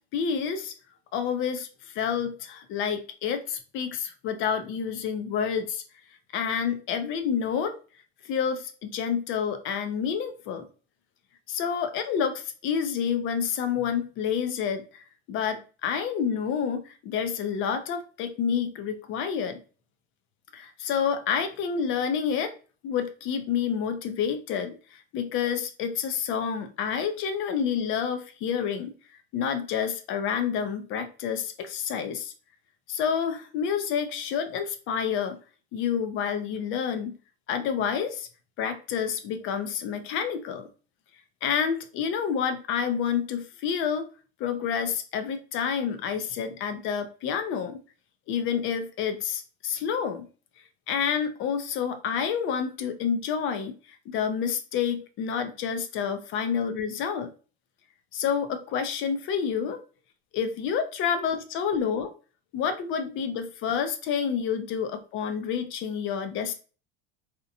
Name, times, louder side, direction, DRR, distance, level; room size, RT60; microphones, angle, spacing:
voice 1, 0.1-0.7 1.1-5.8 6.3-7.8 8.2-10.6 11.5-19.6 20.5-22.6 22.8-28.9 29.3-32.3 32.9-35.4 35.7-37.2 37.5-38.3 38.6-40.7 41.4-44.1 44.4-47.8 48.3-50.3 50.9-57.3 58.1-59.8 60.3-62.1 62.5-66.5, left 7 dB, 40° left, 9 dB, 0.4 m, -29 dB
2.8 x 2.1 x 2.5 m, 0.37 s
supercardioid pair, 130°, 32 cm